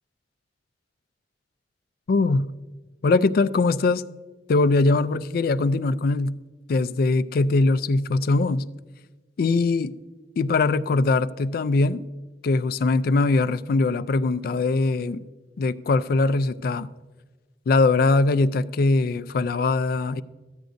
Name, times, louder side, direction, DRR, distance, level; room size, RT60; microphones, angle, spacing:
voice 1, 2.1-2.5 3.0-4.0 4.5-6.4 6.7-8.6 9.4-9.9 10.4-12.0 12.4-15.2 15.6-16.9 17.7-20.2, left 3 dB, 55° left, 0.4 m, -21 dB
14.0 x 9.2 x 2.6 m
head